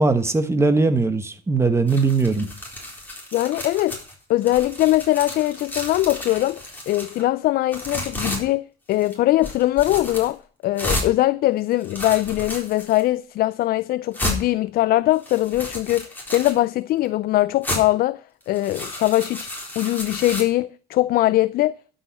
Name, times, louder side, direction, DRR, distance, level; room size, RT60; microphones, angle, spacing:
voice 1, 0.0-2.5, right 3 dB, 15° right, 1.3 m, -20 dB
sound 1, 1.9-4.1 4.4-7.2 7.7-8.4 8.9-9.1 9.4-10.3 10.8-11.1 11.7-13.0 13.6-13.7 14.1-14.4 15.1-16.6 17.6-17.8 18.4-20.4, left 1 dB, 10° left, 4.2 m, -32 dB
voice 2, 3.3-4.0 4.3-19.5 19.8-21.8, left 16 dB, 65° left, 0.4 m, -21 dB
12.0 x 5.6 x 7.4 m
cardioid pair, 110°, 17 cm